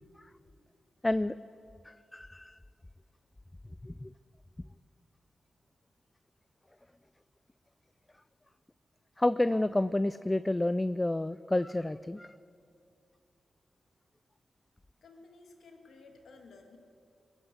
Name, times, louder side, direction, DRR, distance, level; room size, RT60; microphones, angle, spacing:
voice 1, 1.0-1.4 1.9-2.6 3.8-4.1 9.2-12.3, left 1 dB, 20° left, 15 dB, 0.4 m, -30 dB
voice 2, 15.0-16.8, left 3 dB, 75° left, 3 dB, 1.9 m, -54 dB
21.0 x 8.1 x 8.0 m, 2.5 s
supercardioid pair, 40°, 0 cm